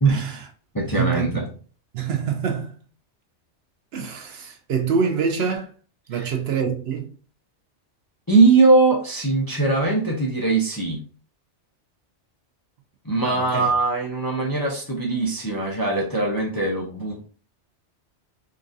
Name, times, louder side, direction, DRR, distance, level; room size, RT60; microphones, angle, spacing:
voice 1, 0.1-0.5 0.9-1.4 1.9-2.8 3.9-5.7 6.1-7.1 13.2-13.7, right 6 dB, 65° right, 0.8 m, -26 dB
voice 2, 0.7-1.5 6.2-6.3 8.3-11.0 13.0-17.3, right 3 dB, 25° left, 0.5 m, -21 dB
3.8 x 2.5 x 2.5 m
omnidirectional pair, 1.2 m